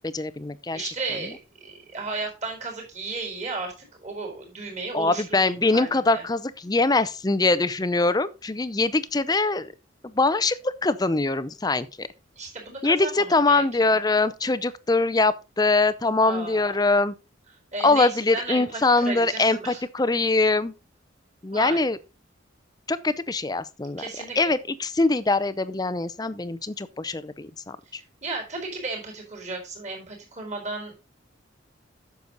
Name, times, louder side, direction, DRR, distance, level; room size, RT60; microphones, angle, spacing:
voice 1, 0.0-0.8 4.9-9.7 10.0-12.1 12.8-17.1 17.8-20.7 21.4-22.0 22.9-24.0 24.4-28.0, left 3 dB, 20° left, 0.5 m, -23 dB
voice 2, 0.7-3.7 4.0-6.2 12.4-14.0 16.2-16.7 17.7-19.8 21.5-21.8 24.0-24.4 27.9-30.9, right 3 dB, 35° right, 4.2 m, -34 dB
9.5 x 6.9 x 3.9 m
head